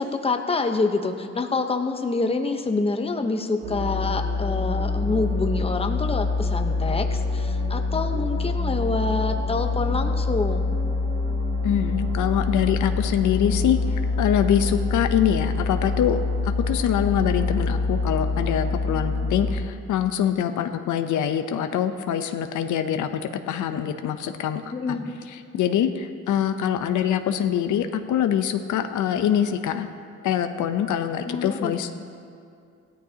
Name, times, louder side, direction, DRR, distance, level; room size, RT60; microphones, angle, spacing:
voice 1, 0.0-10.8 24.7-25.1 31.3-31.8, left 3 dB, 20° left, 5 dB, 0.9 m, -27 dB
sound 1, 3.6-19.5, left 3 dB, 55° right, 2.7 m, -25 dB
voice 2, 11.6-13.8 14.2-23.2 23.5-25.0 25.3-29.9 30.2-31.9, left 9 dB, 75° left, 8 dB, 0.8 m, -24 dB
17.0 x 13.5 x 2.9 m, 2.3 s
cardioid pair, 90°, 30 cm